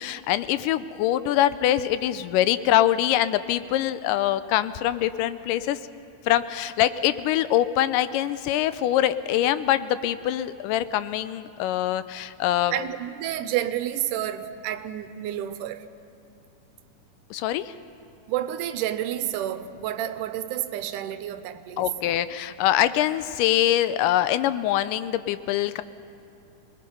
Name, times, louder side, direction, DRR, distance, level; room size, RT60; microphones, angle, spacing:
voice 1, 0.0-5.8 6.3-12.7 17.3-17.7 21.8-25.8, left 12 dB, 90° left, 13 dB, 2.3 m, -24 dB
voice 2, 12.7-15.8 18.3-21.9, right 12 dB, 85° right, 12 dB, 2.2 m, -30 dB
25.0 x 20.0 x 5.4 m, 2.7 s
omnidirectional pair, 3.7 m